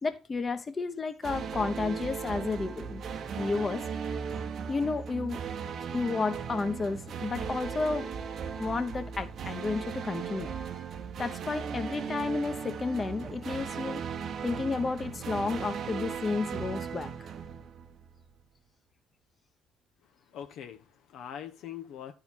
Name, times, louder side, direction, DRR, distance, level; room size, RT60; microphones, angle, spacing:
voice 1, 0.0-3.0 3.4-3.8 4.7-5.4 5.9-8.1 8.6-10.5 11.2-14.0 14.4-17.1, left 4 dB, 35° left, 1.0 m, -32 dB
sound 1, 1.2-18.3, right 7 dB, 55° right, 1.0 m, -37 dB
voice 2, 20.3-22.1, left 9 dB, 70° left, 0.8 m, -42 dB
10.5 x 3.9 x 4.4 m
hypercardioid pair, 60°, 0 cm